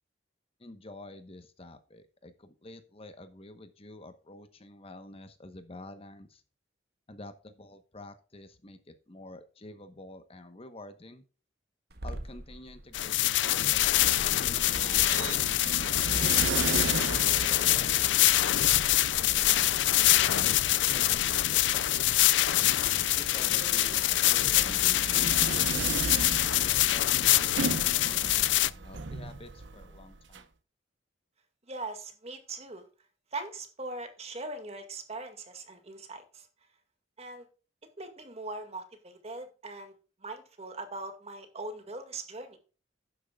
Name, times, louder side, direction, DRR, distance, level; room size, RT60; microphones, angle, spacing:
voice 1, 0.6-6.4 7.1-11.2 12.0-17.1 17.7-18.1 18.5-20.6 20.9-22.2 23.1-26.2 26.7-30.4, left 2 dB, 30° left, 10 dB, 1.0 m, -49 dB
sound 1, 11.9-19.5, right 2 dB, 60° right, 1.6 m, -41 dB
sound 2, 12.9-28.7, left 14 dB, 70° left, 0.5 m, -25 dB
sound 3, 13.6-30.4, right 4 dB, 75° right, 0.9 m, -37 dB
voice 2, 31.7-32.9 33.3-36.5 37.2-37.4 38.0-39.9 40.2-42.6, right 2 dB, 35° right, 7 dB, 2.1 m, -40 dB
12.0 x 9.4 x 2.4 m, 0.34 s
head